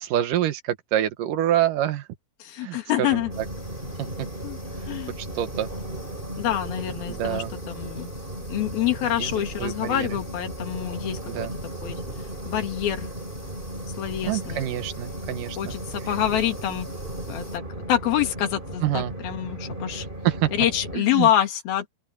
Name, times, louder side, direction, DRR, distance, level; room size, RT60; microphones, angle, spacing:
voice 1, 0.0-2.1 2.6-3.2 4.0-4.3 5.2-5.7 7.1-7.5 9.2-9.3 9.6-10.2 11.3-11.5 14.2-15.8 18.8-19.1 20.2-20.5 20.9-21.3, right 12 dB, 75° right, 2.6 m, -26 dB
voice 2, 2.4-3.3 4.4-4.6 4.9-5.1 6.4-7.4 7.8-8.1 8.5-11.5 11.8-12.0 12.5-13.1 14.0-14.6 15.6-16.9 17.3-17.6 17.9-20.1 20.5-21.9, left 11 dB, 90° left, 3.9 m, -26 dB
Train, 3.1-21.0, right 1 dB, 15° right, 4.2 m, -36 dB
sound 1, 3.3-17.6, left 1 dB, 15° left, 8.0 m, -45 dB
open air
omnidirectional pair, 4.2 m